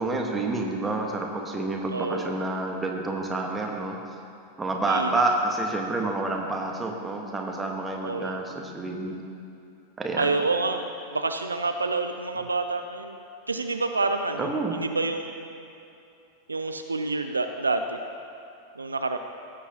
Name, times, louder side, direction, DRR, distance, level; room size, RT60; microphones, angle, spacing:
voice 1, 0.0-4.0 4.6-9.2 10.0-10.3 14.4-14.8, right 2 dB, 15° right, 1 dB, 1.2 m, -28 dB
voice 2, 1.9-2.3 4.7-5.2 8.0-8.4 10.2-13.2 13.5-15.6 16.5-18.0 18.8-19.2, right 3 dB, 80° right, 7 dB, 0.4 m, -28 dB
16.0 x 8.2 x 2.8 m, 2.7 s
figure-of-eight pair, 90°, 0 cm